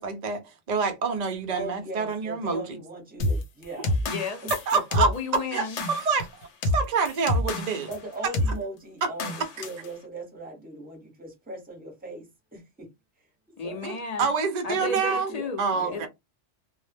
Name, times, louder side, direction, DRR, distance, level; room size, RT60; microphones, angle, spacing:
voice 1, 0.0-2.6 4.5-5.1 5.5-7.9 9.0-9.1 13.8-15.3 15.6-16.1, right 5 dB, 60° right, 0.4 m, -27 dB
voice 2, 1.5-4.0 4.4-5.0 7.8-12.9 13.2-13.8 14.7-16.1, right 1 dB, 10° right, 0.7 m, -39 dB
sound 1, 3.2-8.0 8.3-8.6 9.2-9.9, left 1 dB, 75° left, 0.9 m, -28 dB
voice 3, 4.1-4.4 4.9-5.8 13.6-14.3 14.6-16.1, left 4 dB, 45° left, 0.5 m, -33 dB
2.0 x 2.0 x 3.2 m
omnidirectional pair, 1.2 m